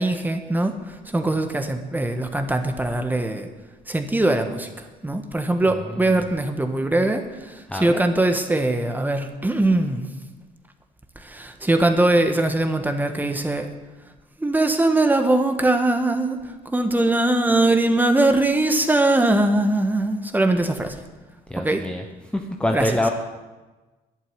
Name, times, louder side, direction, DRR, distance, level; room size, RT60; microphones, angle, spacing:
voice 1, 0.0-3.5 3.9-10.1 11.1-13.7 14.4-21.0 21.6-21.9 22.7-22.9, right 2 dB, 10° right, 6 dB, 1.5 m, -21 dB
voice 2, 5.7-6.1 7.7-8.0 21.5-22.0 22.3-23.1, left 1 dB, 5° left, 3 dB, 1.0 m, -25 dB
11.0 x 8.6 x 9.6 m, 1.2 s
cardioid pair, 110°, 17 cm